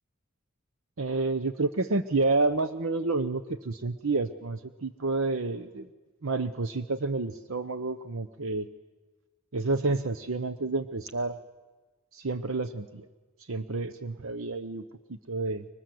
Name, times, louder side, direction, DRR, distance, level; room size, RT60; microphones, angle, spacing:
voice 1, 1.0-5.9 6.2-8.7 9.5-11.4 12.1-13.1 13.4-15.7, right 3 dB, 65° right, 11 dB, 0.9 m, -29 dB
30.0 x 24.0 x 7.8 m, 1.3 s
head